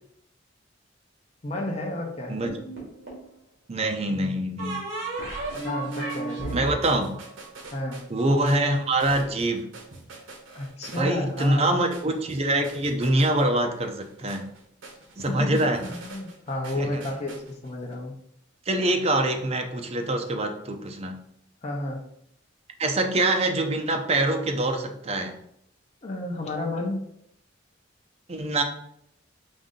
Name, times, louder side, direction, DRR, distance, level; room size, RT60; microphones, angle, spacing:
voice 1, 1.4-2.4 5.6-6.6 7.7-8.0 10.5-11.7 15.3-18.2 21.6-22.0 26.0-27.0, left 1 dB, 35° left, 0 dB, 0.7 m, -31 dB
sound 1, 2.5-3.3 4.6-8.2, right 2 dB, 60° right, 1.9 m, -34 dB
voice 2, 3.7-4.9 6.5-7.1 8.1-9.7 11.0-14.5 15.2-15.8 16.8-17.0 18.7-21.2 22.8-25.3 28.3-28.6, right 1 dB, 30° right, 4 dB, 0.6 m, -24 dB
sound 2, 5.2-17.9, right 3 dB, 80° right, 0.9 m, -46 dB
5.1 x 2.6 x 3.7 m, 0.74 s
head